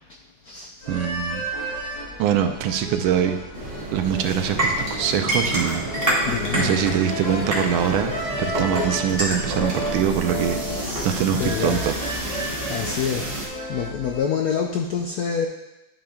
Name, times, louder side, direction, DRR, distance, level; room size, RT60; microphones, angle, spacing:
sound 1, 0.8-14.2, equal, 55° left, 2.3 m, -33 dB
voice 1, 0.9-1.4 2.2-3.4 3.9-5.9 6.5-12.3, right 9 dB, 85° right, 7 dB, 1.4 m, -24 dB
sound 2, 3.5-13.5, right 1 dB, 30° right, 1.5 m, -28 dB
voice 2, 6.3-6.9 10.7-11.9 12.7-13.3 13.7-15.5, left 7 dB, 80° left, 1 dB, 0.8 m, -27 dB
11.5 x 5.1 x 2.3 m, 0.96 s
omnidirectional pair, 2.2 m